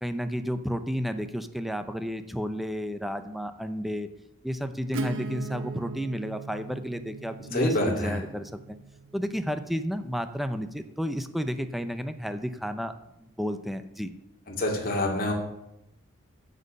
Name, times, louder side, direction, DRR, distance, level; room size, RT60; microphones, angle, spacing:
voice 1, 0.0-4.1 4.4-8.8 9.1-12.9 13.2-14.1, equal, ahead, 9 dB, 0.5 m, -32 dB
Acoustic guitar / Strum, 4.9-10.4, right 3 dB, 65° right, 0.7 m, -39 dB
voice 2, 7.5-8.2 14.6-15.3, left 1 dB, 45° left, -1 dB, 2.4 m, -26 dB
8.1 x 7.4 x 6.4 m, 0.85 s
head